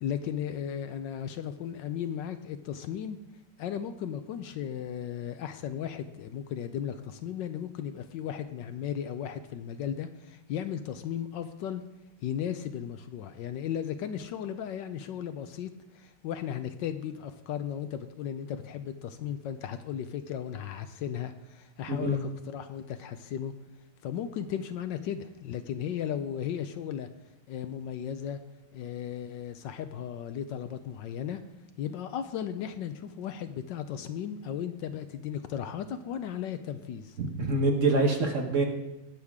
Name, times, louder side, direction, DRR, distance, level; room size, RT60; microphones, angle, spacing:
voice 1, 0.0-3.2 3.6-11.8 12.2-23.5 24.0-27.1 27.5-28.4 28.7-31.4 31.8-37.2, left 9 dB, 75° left, 10 dB, 1.2 m, -35 dB
voice 2, 21.9-22.2 37.2-38.7, right 2 dB, 45° right, 3 dB, 1.2 m, -26 dB
18.5 x 6.5 x 3.6 m, 0.97 s
omnidirectional pair, 2.1 m